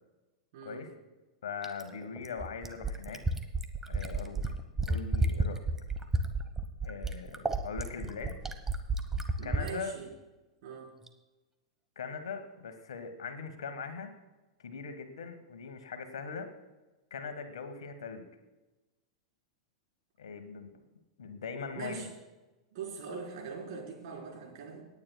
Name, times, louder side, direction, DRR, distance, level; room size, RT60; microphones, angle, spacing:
voice 1, 0.5-0.8 9.4-10.1 10.6-10.9 21.7-22.1 22.7-24.8, right 5 dB, 55° right, -1 dB, 4.1 m, -42 dB
voice 2, 1.4-3.2 3.9-4.5 4.8-5.6 6.8-8.4 9.4-9.9 11.9-14.1 14.6-16.5 17.1-18.3 20.2-20.7 21.2-22.1, left 5 dB, 70° left, 8 dB, 1.4 m, -40 dB
Fill (with liquid), 1.6-9.7 11.1-11.2, right 2 dB, 10° right, 1.1 m, -31 dB
27.0 x 9.7 x 2.3 m, 1.1 s
figure-of-eight pair, 100°, 3 cm